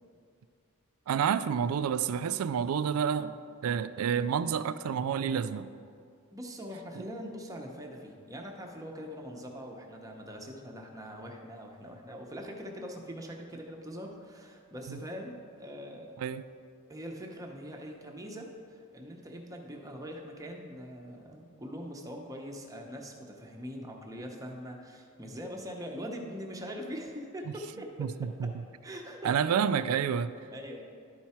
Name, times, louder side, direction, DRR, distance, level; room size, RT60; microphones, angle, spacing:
voice 1, 1.1-3.4 3.6-5.7 7.0-7.1 14.9-15.0 16.2-16.4 28.0-28.1 29.2-30.3, right 7 dB, 80° right, 0.3 m, -29 dB
voice 2, 6.3-16.2 16.9-28.5 28.8-29.6 30.5-30.8, equal, 15° right, 0.8 m, -42 dB
11.5 x 4.6 x 4.3 m
head